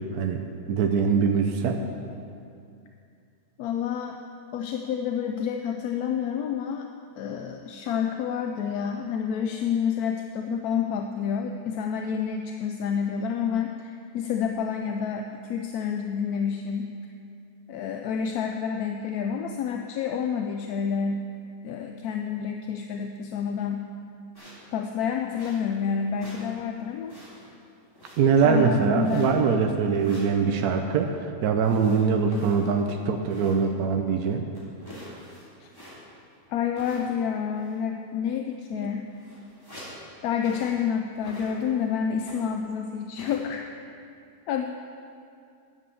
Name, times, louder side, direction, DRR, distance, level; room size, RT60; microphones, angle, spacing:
voice 1, 0.1-0.4 0.7-1.8 28.2-34.4 38.8-38.9, right 5 dB, 80° right, 4 dB, 1.2 m, -23 dB
voice 2, 3.6-4.2 4.5-6.9 7.2-16.9 17.7-21.3 21.6-23.9 24.7-27.2 28.4-29.4 35.6-35.7 36.5-39.1 40.2-43.7 44.5-44.6, left 7 dB, 80° left, 4 dB, 1.1 m, -29 dB
sound 1, 24.3-24.7 25.3-25.9 26.1-26.5 26.8-27.5 27.9-28.5 29.0-29.5 29.9-30.4 31.6-33.7 34.1-34.2 34.5-36.2 36.7-37.3 37.6-37.8 38.5-38.6 38.8-40.0 40.4-40.8 41.2-41.8 42.2-42.6 43.1-43.4, equal, 15° left, 2.9 m, -47 dB
10.5 x 7.4 x 7.0 m, 2.4 s
omnidirectional pair, 1.6 m